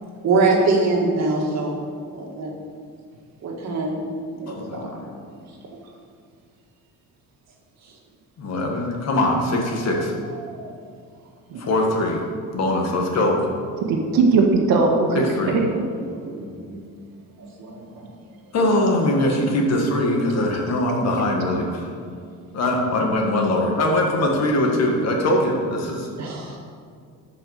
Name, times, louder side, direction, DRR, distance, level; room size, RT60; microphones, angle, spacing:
voice 1, 0.2-1.7 2.1-2.5 3.4-4.0 4.3-5.0 5.3-5.4 10.4-10.7 16.1-16.8 17.6-18.1 26.1-26.5, right 3 dB, 50° right, -1 dB, 2.2 m, -24 dB
voice 2, 4.5-4.9 8.4-10.1 11.6-12.2 12.5-13.5 15.1-15.6 18.5-21.9 22.5-26.1 26.5-26.6, left 1 dB, 50° left, 1 dB, 1.9 m, -22 dB
voice 3, 13.9-15.8, right 4 dB, 85° right, 1 dB, 1.7 m, -19 dB
11.5 x 5.8 x 6.7 m, 2.2 s
cardioid pair, 160°, 34 cm